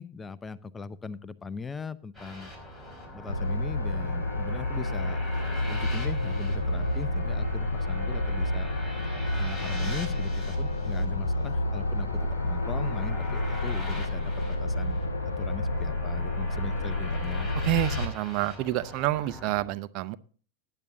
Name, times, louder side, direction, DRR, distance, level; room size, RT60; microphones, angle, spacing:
voice 1, 0.0-2.5 3.1-5.2 5.6-8.7 9.3-12.1 12.4-17.5, left 5 dB, 15° left, 0.6 m, -40 dB
Build Up Tune, 2.1-19.7, left 1 dB, 5° right, 5.7 m, -41 dB
sound 1, 3.3-18.1, left 1 dB, 75° left, 1.0 m, -29 dB
voice 2, 17.6-20.2, right 16 dB, 40° right, 0.6 m, -28 dB
18.5 x 9.9 x 2.7 m
figure-of-eight pair, 90°, 0 cm